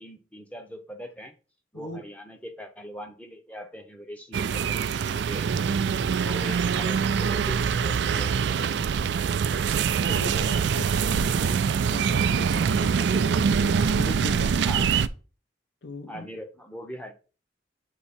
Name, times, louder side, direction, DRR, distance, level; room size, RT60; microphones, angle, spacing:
voice 1, 0.0-1.4 1.7-5.7 6.2-8.9 14.7-15.0 16.1-17.1, equal, 5° left, 0.8 m, -41 dB
sound 1, 4.3-15.1, right 6 dB, 70° right, 0.3 m, -24 dB
voice 2, 10.1-14.9 15.8-16.3, left 2 dB, 75° left, 0.9 m, -38 dB
8.1 x 2.9 x 4.2 m
head